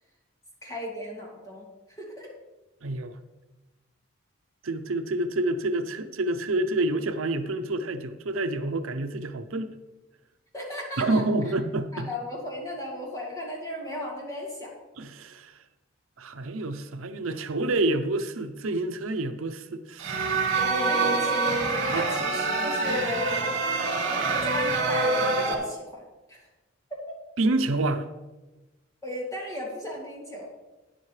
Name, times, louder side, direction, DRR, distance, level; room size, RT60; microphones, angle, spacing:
voice 1, 0.6-1.6 2.0-2.3 10.5-11.2 11.9-14.7 20.6-23.5 24.1-26.4 29.0-30.5, left 1 dB, 15° left, -3 dB, 2.3 m, -35 dB
voice 2, 2.8-3.2 4.6-9.7 11.0-12.1 15.0-15.6 16.2-20.4 21.9-22.1 27.4-28.1, right 2 dB, 80° right, 8 dB, 0.7 m, -28 dB
sound 1, 20.0-25.5, right 3 dB, 60° right, 2.4 m, -26 dB
12.0 x 9.9 x 3.3 m, 1.1 s
head